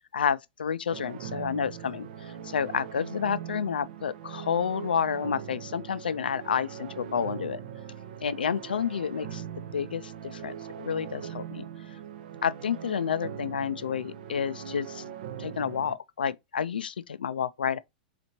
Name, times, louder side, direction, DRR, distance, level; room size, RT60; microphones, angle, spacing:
voice 1, 0.1-7.6 8.2-9.4 9.7-11.6 12.4-15.0 15.4-17.8, left 7 dB, 85° left, 0.3 m, -30 dB
sound 1, 0.9-16.0, right 9 dB, 65° right, 0.6 m, -41 dB
4.2 x 2.9 x 2.7 m
hypercardioid pair, 105°, 5 cm